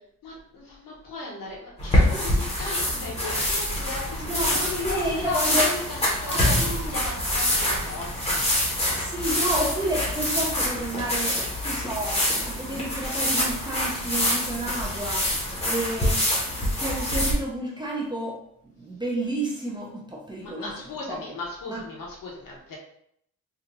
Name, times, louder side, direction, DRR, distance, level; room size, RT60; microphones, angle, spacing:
voice 1, 0.2-8.5 20.4-22.8, left 3 dB, 65° left, -2 dB, 1.2 m, -36 dB
sound 1, 1.8-17.3, left 1 dB, 15° left, 0.8 m, -25 dB
voice 2, 4.3-5.7 6.2-7.0 8.9-21.2 21.7-21.8, right 1 dB, 15° right, -4 dB, 0.5 m, -31 dB
3.8 x 2.4 x 2.9 m, 0.69 s
wide cardioid pair, 170°, 36 cm